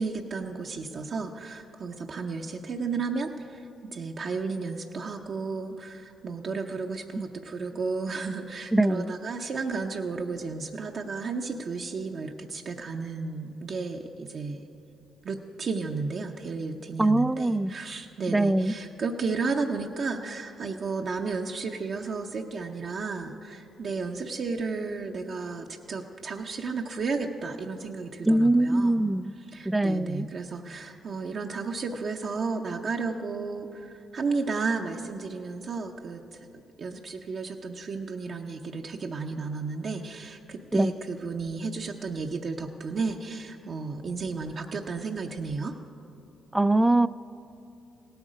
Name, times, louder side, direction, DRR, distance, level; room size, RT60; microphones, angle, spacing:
voice 1, 0.0-3.7 3.9-14.7 15.2-29.1 29.5-36.5 36.8-45.7, right 4 dB, 55° right, 1 dB, 0.6 m, -33 dB
voice 2, 8.7-9.1 17.0-17.7 18.3-18.7 28.3-29.3 29.7-30.3 40.7-40.9 46.5-47.1, right 1 dB, 15° right, 17 dB, 0.3 m, -22 dB
17.0 x 8.0 x 5.1 m, 2.7 s
supercardioid pair, 60°, 0 cm